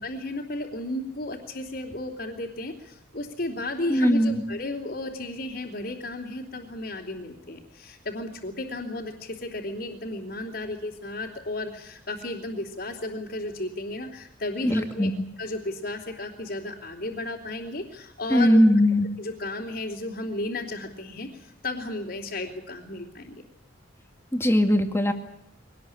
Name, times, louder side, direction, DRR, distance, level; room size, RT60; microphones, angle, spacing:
voice 1, 0.0-15.1 15.4-18.6 19.2-23.4, left 2 dB, 55° left, -4 dB, 3.4 m, -34 dB
voice 2, 3.9-4.4 14.6-15.2 18.3-19.1 24.3-25.1, equal, 15° left, 5 dB, 2.2 m, -20 dB
23.5 x 19.0 x 8.7 m, 0.80 s
head